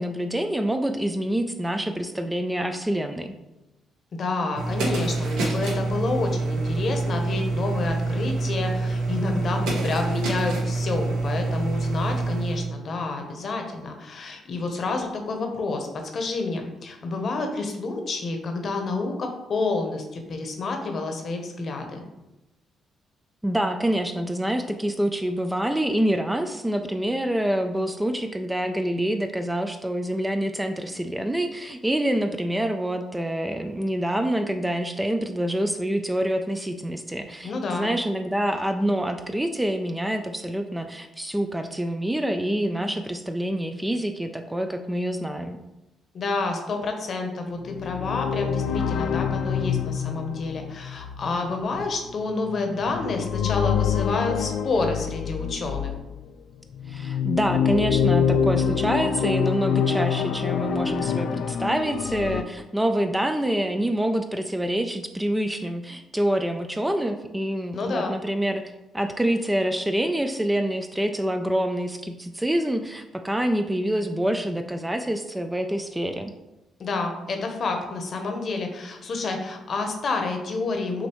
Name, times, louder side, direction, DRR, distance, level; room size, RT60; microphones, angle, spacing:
voice 1, 0.0-3.3 23.4-45.6 56.9-76.3, right 1 dB, 10° right, 7 dB, 0.3 m, -26 dB
voice 2, 4.1-22.1 37.4-37.9 46.1-55.9 67.7-68.1 76.8-81.1, left 3 dB, 50° left, 4 dB, 0.8 m, -29 dB
sound 1, 4.5-12.7, right 3 dB, 90° right, 1.0 m, -26 dB
sound 2, 47.6-56.1 56.7-62.4, left 7 dB, 75° left, 0.3 m, -26 dB
6.2 x 2.7 x 3.0 m, 0.99 s
cardioid pair, 90°, 0 cm